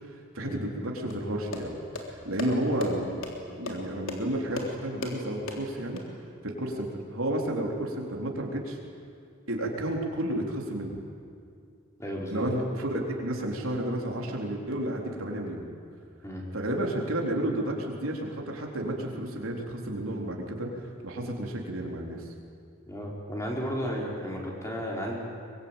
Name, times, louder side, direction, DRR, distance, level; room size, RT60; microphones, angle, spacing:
voice 1, 0.1-3.2 3.6-6.0 6.4-8.8 9.5-11.0 12.3-15.7 16.5-20.7 21.0-22.2, right 1 dB, 80° right, 0 dB, 3.9 m, -31 dB
sound 1, 1.1-6.0, left 2 dB, 70° left, 3.6 m, -38 dB
voice 2, 12.0-12.4 16.2-16.4 22.9-25.2, equal, 15° left, -2 dB, 4.5 m, -33 dB
23.5 x 23.0 x 9.1 m, 2.4 s
head